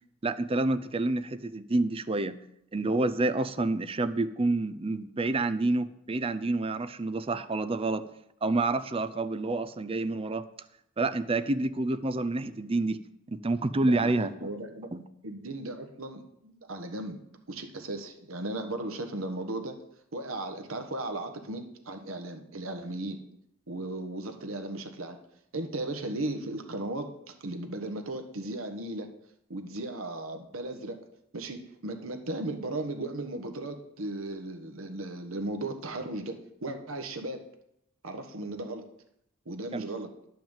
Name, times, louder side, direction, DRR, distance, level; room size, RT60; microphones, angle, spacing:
voice 1, 0.2-2.4 2.7-8.1 8.4-10.4 11.0-13.0 13.3-14.5 14.9-15.1 39.7-39.9, right 2 dB, 25° right, 12 dB, 0.5 m, -28 dB
voice 2, 13.8-14.9 15.2-17.2 17.5-19.8 20.1-23.2 23.7-25.2 25.5-29.1 29.5-31.0 31.3-37.4 38.0-38.9 39.4-40.1, right 2 dB, 80° right, 6 dB, 1.3 m, -36 dB
10.5 x 5.9 x 7.2 m, 0.78 s
head